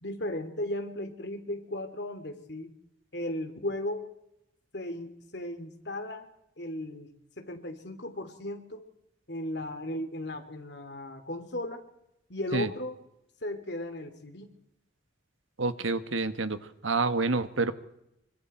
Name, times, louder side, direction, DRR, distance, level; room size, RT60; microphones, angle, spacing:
voice 1, 0.0-2.7 3.1-4.1 4.7-6.3 6.6-7.1 7.4-8.8 9.3-11.8 12.3-13.0 13.4-14.5, left 1 dB, 55° left, 6 dB, 2.9 m, -36 dB
voice 2, 15.6-16.6 16.8-17.7, right 3 dB, 85° right, 11 dB, 1.4 m, -28 dB
25.5 x 24.5 x 4.5 m, 0.82 s
head